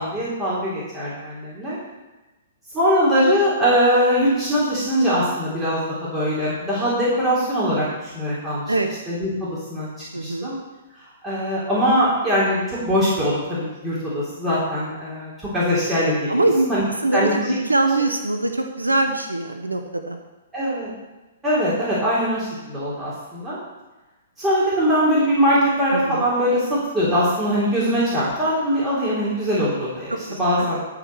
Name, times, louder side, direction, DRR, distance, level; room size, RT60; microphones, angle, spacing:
voice 1, 0.0-1.8 2.7-8.6 9.1-9.3 9.7-9.9 10.2-10.5 11.2-16.8 17.1-17.6 20.5-20.9 21.4-23.6 24.4-30.8, equal, 15° right, -9 dB, 3.5 m, -21 dB
voice 2, 10.1-10.5 16.3-16.7 17.0-20.2 25.9-26.3 30.1-30.7, right 2 dB, 85° right, 6 dB, 0.9 m, -23 dB
12.5 x 5.1 x 6.3 m, 1.1 s
figure-of-eight pair, 115°, 0 cm